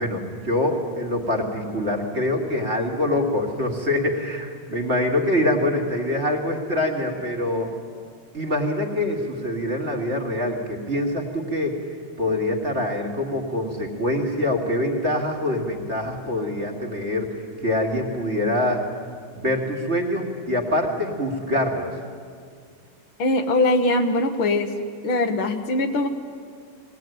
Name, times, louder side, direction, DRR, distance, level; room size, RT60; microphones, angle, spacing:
voice 1, 0.0-7.7 8.3-11.8 12.2-18.8 19.4-21.9, left 1 dB, 30° right, 1 dB, 2.3 m, -25 dB
voice 2, 23.2-24.7 25.0-26.1, left 2 dB, 75° left, 6 dB, 2.0 m, -21 dB
21.5 x 18.0 x 9.2 m, 2.1 s
omnidirectional pair, 2.3 m